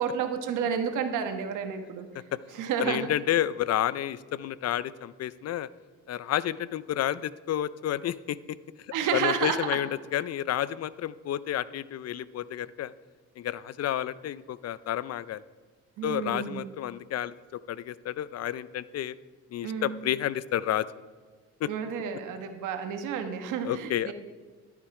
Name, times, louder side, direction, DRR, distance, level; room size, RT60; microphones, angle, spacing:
voice 1, 0.0-2.1 2.6-3.1 8.9-9.8 16.0-16.6 19.6-19.9 21.7-24.1, right 7 dB, 85° right, 6 dB, 1.4 m, -30 dB
voice 2, 2.8-5.7 6.1-8.4 9.1-12.9 13.4-15.4 16.0-19.2 19.5-20.9 21.6-21.7 23.6-24.1, left 11 dB, 55° left, 18 dB, 0.5 m, -30 dB
13.5 x 8.5 x 4.9 m, 1.5 s
cardioid pair, 90°, 30 cm